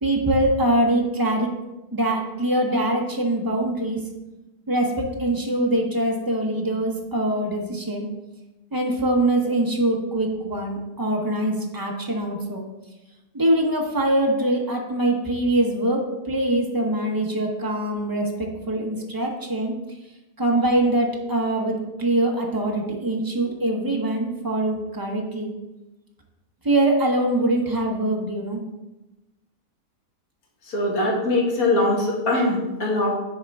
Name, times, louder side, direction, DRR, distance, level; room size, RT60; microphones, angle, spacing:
voice 1, 0.0-1.5 1.9-4.0 4.7-8.1 8.7-12.6 13.3-19.7 20.4-25.5 26.6-28.6, right 1 dB, 25° right, 0 dB, 0.5 m, -23 dB
voice 2, 30.7-33.1, left 2 dB, 60° left, -2 dB, 1.8 m, -22 dB
9.9 x 3.6 x 3.5 m, 1.0 s
omnidirectional pair, 1.8 m